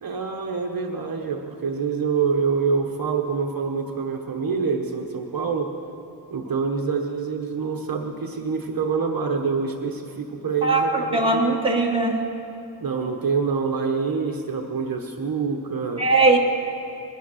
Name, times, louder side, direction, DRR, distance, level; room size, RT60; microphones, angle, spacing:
voice 1, 0.0-5.7 6.3-11.4 12.8-16.0, right 5 dB, 50° right, 2 dB, 1.0 m, -26 dB
voice 2, 10.6-12.2 16.0-16.4, right 3 dB, 10° right, -1 dB, 1.4 m, -20 dB
20.0 x 11.5 x 6.3 m, 2.7 s
wide cardioid pair, 170°, 44 cm